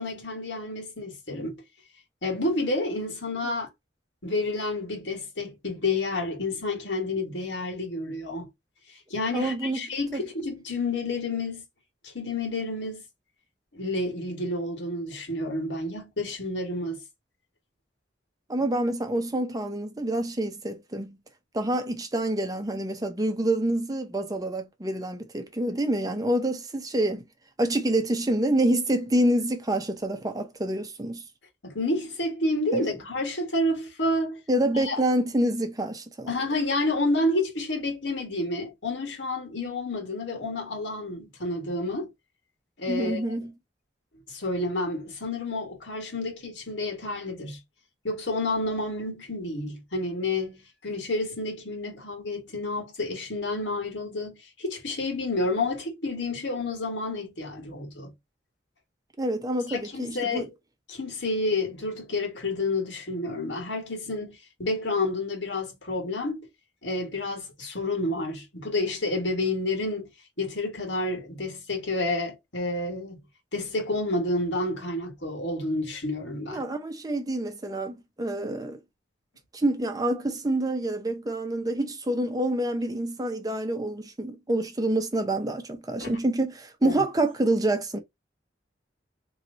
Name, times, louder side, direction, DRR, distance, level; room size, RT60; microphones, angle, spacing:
voice 1, 0.0-1.6 2.2-3.7 4.2-8.5 9.1-11.6 12.0-13.0 13.7-17.0 31.6-34.4 34.7-35.0 36.3-42.1 42.8-43.2 44.3-47.6 48.0-58.1 59.7-60.4 60.9-66.4 66.8-70.1 70.4-73.2 73.5-76.6 86.0-86.2 86.8-87.0, left 2 dB, 80° left, 1.8 m, -29 dB
voice 2, 9.3-9.8 10.1-10.2 18.5-21.2 21.5-27.2 27.6-31.2 32.7-32.9 34.5-36.3 42.9-43.5 59.2-60.5 76.5-78.8 79.5-88.0, right 1 dB, 20° right, 0.6 m, -27 dB
3.1 x 3.0 x 3.9 m
head